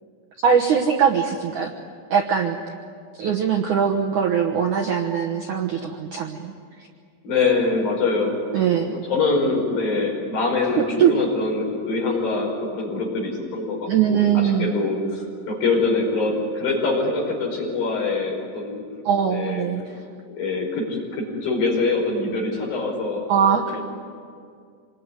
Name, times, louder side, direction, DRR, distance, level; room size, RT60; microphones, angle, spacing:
voice 1, 0.4-1.7 2.1-2.6 3.1-6.5 6.8-6.9 8.5-9.0 10.8-11.2 13.9-14.7 19.0-20.0 23.3-23.8, right 7 dB, 85° right, 1 dB, 1.7 m, -21 dB
voice 2, 7.2-8.4 9.1-18.8 19.3-19.7 20.3-20.9 21.1-23.9, left 3 dB, 50° left, -1 dB, 6.5 m, -24 dB
26.5 x 21.5 x 9.8 m, 2.2 s
omnidirectional pair, 5.5 m